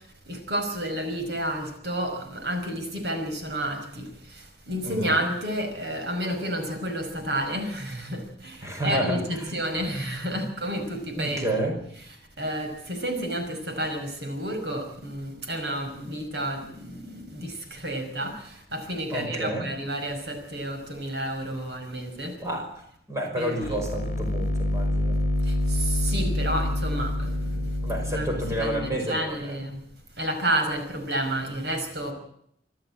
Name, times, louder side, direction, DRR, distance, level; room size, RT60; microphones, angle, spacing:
voice 1, 0.3-4.1 4.7-11.5 12.4-22.3 23.4-23.8 25.7-27.6 28.1-29.8 30.2-32.1, right 1 dB, 70° right, 5 dB, 5.3 m, -30 dB
voice 2, 4.8-5.1 8.6-9.5 11.2-11.8 19.1-19.7 22.4-22.7 23.1-25.2 27.8-29.4, right 1 dB, 15° right, 1 dB, 5.5 m, -29 dB
sound 1, 23.6-29.0, left 1 dB, 40° left, 2.0 m, -27 dB
26.0 x 13.0 x 8.7 m, 0.70 s
head